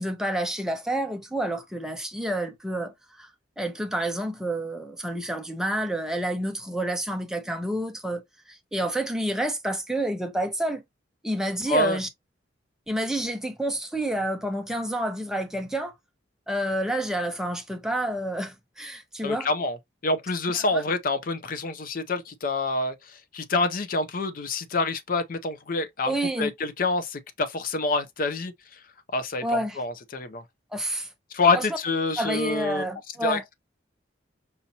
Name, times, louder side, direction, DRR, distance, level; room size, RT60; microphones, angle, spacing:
voice 1, 0.0-3.3 3.6-8.2 8.5-10.8 11.2-12.1 12.9-15.9 16.5-19.5 20.5-20.8 26.0-26.5 29.4-29.8 30.7-31.1 31.5-31.7 32.2-33.4, right 1 dB, 5° right, 0.7 m, -29 dB
voice 2, 11.7-12.0 19.2-19.8 20.0-28.5 29.1-30.4 31.3-32.9 33.2-33.5, left 3 dB, 45° left, 0.5 m, -27 dB
5.5 x 2.7 x 2.7 m
head